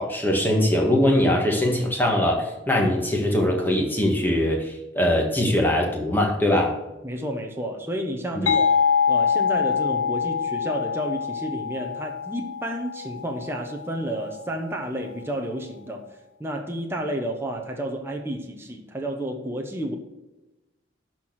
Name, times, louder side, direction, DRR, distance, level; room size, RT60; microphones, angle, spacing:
voice 1, 0.0-6.8 8.4-8.5, left 1 dB, 10° left, 0 dB, 1.8 m, -22 dB
voice 2, 7.0-8.7 9.1-16.0 16.4-19.9, equal, 10° right, 2 dB, 1.0 m, -31 dB
sound 1, 8.5-13.9, left 6 dB, 90° left, 0.6 m, -24 dB
11.5 x 4.5 x 6.5 m, 1.0 s
head